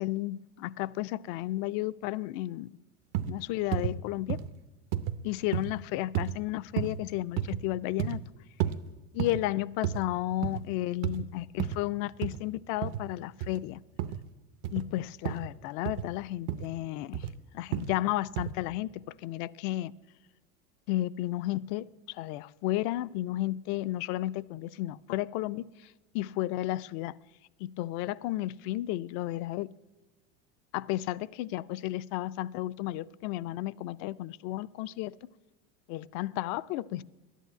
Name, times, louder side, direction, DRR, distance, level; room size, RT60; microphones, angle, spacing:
voice 1, 0.0-2.7 3.3-4.4 5.2-8.2 9.1-13.8 14.7-17.3 17.5-19.9 20.9-27.2 27.6-29.7 30.7-35.2 35.9-37.0, left 15 dB, 55° left, 0.5 m, -33 dB
sound 1, 3.1-3.4 3.7-3.9 4.3-4.5 4.9-5.2 5.5-5.7 6.2-6.4 6.8-7.0 7.4-7.6 8.0-8.2 8.6-8.8 9.2-9.4 9.8-10.0 10.3-10.6 11.0-11.3 11.6-11.8 12.2-12.4 12.8-13.0 13.4-13.6 14.0-14.2 14.6-14.9 15.3-15.5 15.9-16.1 16.5-16.7 17.1-17.3 17.7-18.0 18.4-18.5, right 11 dB, 65° right, 0.8 m, -31 dB
11.0 x 9.2 x 9.1 m
supercardioid pair, 135°, 35 cm